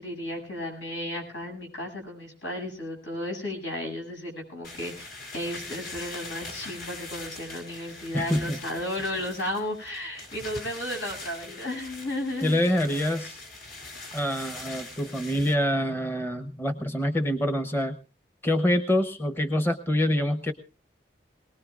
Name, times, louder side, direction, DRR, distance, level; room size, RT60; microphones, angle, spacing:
voice 1, 0.0-12.6, left 1 dB, 80° left, 2 dB, 7.8 m, -34 dB
sound 1, 4.6-15.5, left 2 dB, 55° left, 3.9 m, -42 dB
voice 2, 8.1-8.6 12.4-13.4 14.1-18.0 18.4-20.5, equal, 15° left, 8 dB, 0.9 m, -26 dB
22.0 x 19.5 x 2.5 m, 0.35 s
head